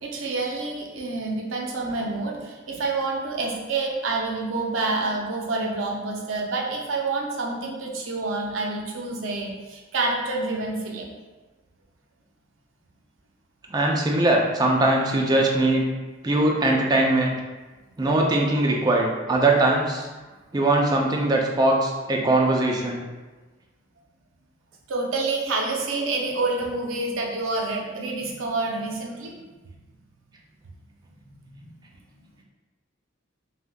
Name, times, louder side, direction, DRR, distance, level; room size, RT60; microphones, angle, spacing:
voice 1, 0.0-11.1 24.9-29.4 31.3-31.7, right 3 dB, 85° right, 0 dB, 0.6 m, -28 dB
voice 2, 13.7-15.8 16.2-17.4 18.0-20.1 20.5-23.0, right 2 dB, 20° right, -1 dB, 0.4 m, -21 dB
3.4 x 2.6 x 2.2 m, 1.3 s
head